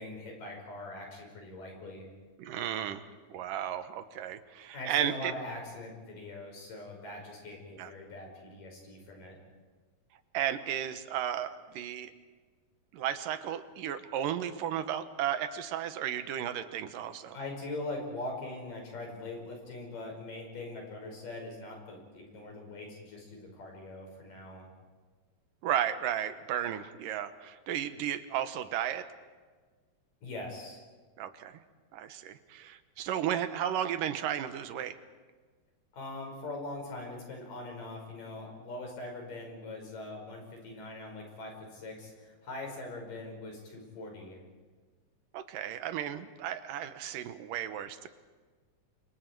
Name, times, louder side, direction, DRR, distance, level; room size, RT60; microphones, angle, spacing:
voice 1, 0.0-2.1 4.7-9.4 17.3-24.7 30.2-30.8 35.9-44.4, left 2 dB, 85° left, 1 dB, 7.1 m, -42 dB
voice 2, 2.4-3.0 3.3-5.3 7.7-7.9 10.3-12.1 12.9-17.4 25.6-29.1 31.2-31.6 31.9-35.0 45.3-48.1, right 10 dB, 85° right, 10 dB, 2.7 m, -34 dB
30.0 x 24.5 x 4.7 m, 1.4 s
omnidirectional pair, 3.7 m